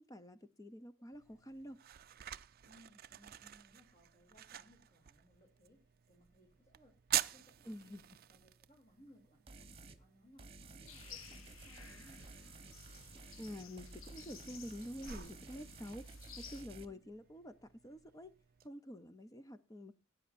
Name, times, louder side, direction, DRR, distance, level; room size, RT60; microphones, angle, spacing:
voice 1, 0.0-1.8 7.7-8.0 13.4-16.1 16.4-18.3 18.6-20.0, equal, 15° left, 0.6 m, -48 dB
sound 1, 1.1-18.7, right 13 dB, 45° right, 0.5 m, -47 dB
voice 2, 2.6-8.0 8.3-12.4 16.9-17.0, equal, 35° left, 3.1 m, -65 dB
sound 2, 9.5-10.0 10.4-16.9, right 3 dB, 30° right, 1.2 m, -54 dB
sound 3, 10.9-16.6, left 8 dB, 80° left, 0.8 m, -56 dB
18.5 x 9.6 x 2.6 m
head